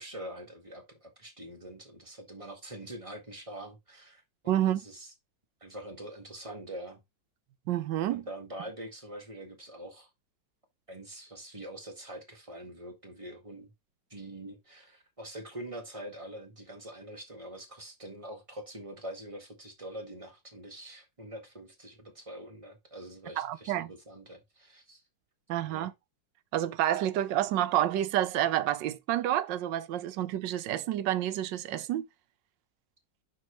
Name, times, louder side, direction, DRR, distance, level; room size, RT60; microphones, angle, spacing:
voice 1, 0.0-5.1 5.6-7.0 8.1-10.1 10.9-13.7 14.1-25.0 25.7-25.9, right 1 dB, 20° right, 1.7 m, -44 dB
voice 2, 4.5-4.8 7.7-8.2 23.4-23.9 25.5-25.9 26.5-32.0, right 12 dB, 80° right, 1.3 m, -29 dB
6.1 x 5.9 x 3.1 m
omnidirectional pair, 2.0 m